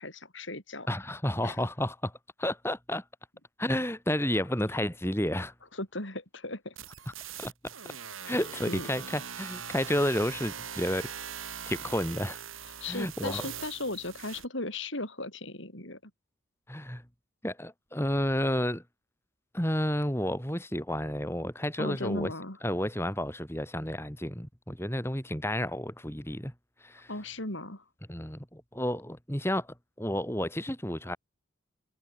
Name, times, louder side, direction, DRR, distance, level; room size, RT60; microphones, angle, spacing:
voice 1, 0.0-0.9 1.4-1.6 5.7-6.7 8.3-8.9 12.8-16.1 21.8-22.6 27.1-27.8, left 2 dB, 70° left, 7.6 m, -37 dB
voice 2, 0.9-2.1 2.4-3.0 3.6-5.5 7.4-7.5 8.2-11.1 11.7-12.4 12.8-13.5 16.7-17.0 17.4-18.8 19.5-22.3 22.6-26.5 26.8-27.1 28.1-31.2, left 1 dB, 10° left, 7.9 m, -31 dB
sound 1, 6.8-14.5, right 8 dB, 85° right, 7.1 m, -41 dB
head